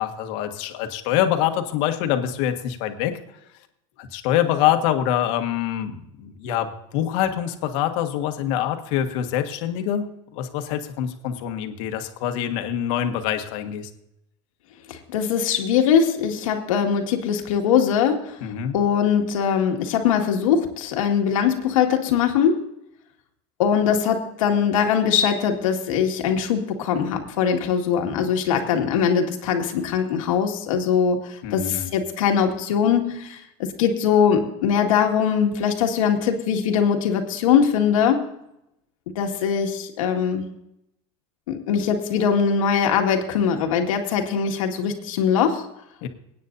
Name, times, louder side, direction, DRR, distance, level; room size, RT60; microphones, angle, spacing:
voice 1, 0.0-3.2 4.0-10.1 10.3-13.9 18.4-18.7 31.4-31.9 46.0-46.1, left 10 dB, 65° left, 6 dB, 1.7 m, -25 dB
voice 2, 14.9-18.4 18.7-22.6 23.6-38.2 39.2-40.4 41.5-45.6, left 7 dB, 85° left, 3 dB, 2.1 m, -21 dB
24.5 x 9.4 x 2.7 m, 0.81 s
supercardioid pair, 130°, 17 cm